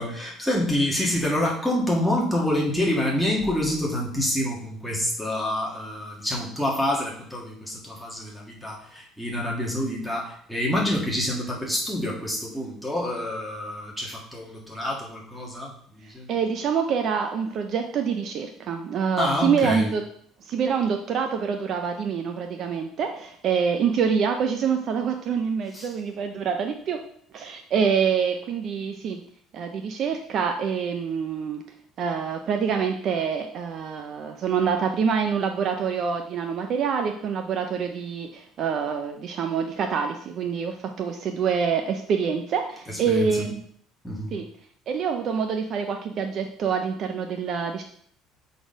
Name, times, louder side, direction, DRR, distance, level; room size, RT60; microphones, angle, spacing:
voice 1, 0.0-16.3 19.2-19.9 25.7-25.9 42.8-43.4 44.0-44.3, left 1 dB, ahead, -4 dB, 1.6 m, -27 dB
voice 2, 16.3-20.0 20.4-27.0 27.3-29.2 29.5-31.6 32.0-43.6 44.3-44.5 44.9-47.8, right 6 dB, 40° right, 6 dB, 0.5 m, -26 dB
6.6 x 4.0 x 5.1 m, 0.62 s
cardioid pair, 170°, 0 cm